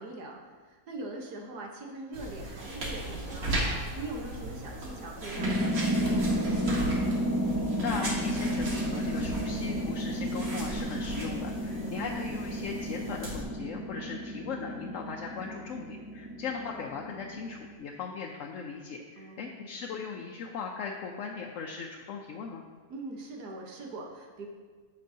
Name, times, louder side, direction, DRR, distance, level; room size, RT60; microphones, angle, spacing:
voice 1, 0.0-3.5 4.0-6.9 11.7-12.0 16.2-16.4 19.2-19.7 22.9-24.5, right 2 dB, 90° right, 0 dB, 1.7 m, -42 dB
sound 1, 2.1-13.4, right 1 dB, 65° right, 2.3 m, -37 dB
sound 2, 5.4-17.7, equal, 15° right, 1.1 m, -32 dB
voice 2, 7.8-22.6, left 5 dB, 65° left, 1 dB, 0.9 m, -38 dB
14.0 x 5.3 x 2.7 m, 1.5 s
omnidirectional pair, 1.6 m